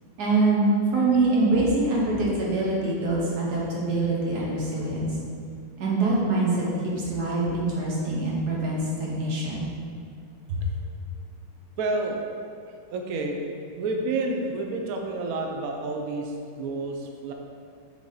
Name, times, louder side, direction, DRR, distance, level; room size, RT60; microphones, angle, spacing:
voice 1, 0.2-5.1 5.8-6.6 7.1-9.7 10.5-10.6, right 2 dB, 55° right, -5 dB, 1.5 m, -24 dB
voice 2, 10.6-11.0 11.8-12.3 12.7-13.4 13.7-17.3, right 2 dB, 90° right, 2 dB, 0.7 m, -30 dB
7.3 x 3.6 x 3.9 m, 2.3 s
omnidirectional pair, 2.3 m